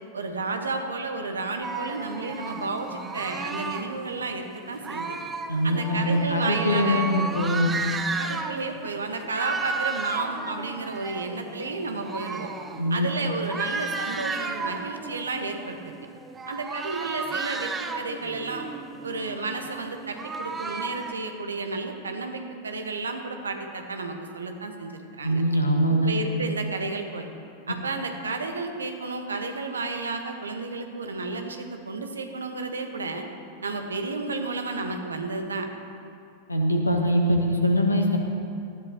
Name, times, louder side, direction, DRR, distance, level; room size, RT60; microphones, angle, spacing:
voice 1, 0.1-5.2 5.6-7.1 8.2-12.5 12.9-15.9 16.5-18.7 19.0-25.4 25.9-27.3 27.7-33.2 33.6-35.7, right 3 dB, 75° right, 5 dB, 1.2 m, -32 dB
sound 1, 1.6-4.0 4.8-8.7 9.1-21.1, right 4 dB, 15° right, 0.8 m, -34 dB
voice 2, 5.5-7.7 12.8-13.1 25.2-26.2 36.5-38.2, equal, 80° left, 2 dB, 1.5 m, -23 dB
18.5 x 13.0 x 2.9 m, 2.5 s
figure-of-eight pair, 90°, 0 cm